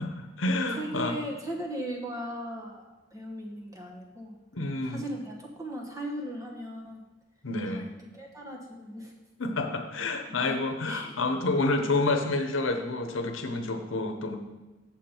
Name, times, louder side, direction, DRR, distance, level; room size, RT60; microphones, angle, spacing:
voice 1, 0.0-1.2 4.5-5.0 7.4-7.9 9.4-14.4, left 2 dB, 80° left, 5 dB, 0.9 m, -29 dB
voice 2, 0.8-2.8 3.1-4.4 4.9-7.0 7.7-7.8 8.1-9.1 9.9-10.0 10.3-10.6 10.9-11.2, right 1 dB, 15° right, 0 dB, 1.2 m, -37 dB
7.2 x 7.1 x 4.5 m, 1.1 s
head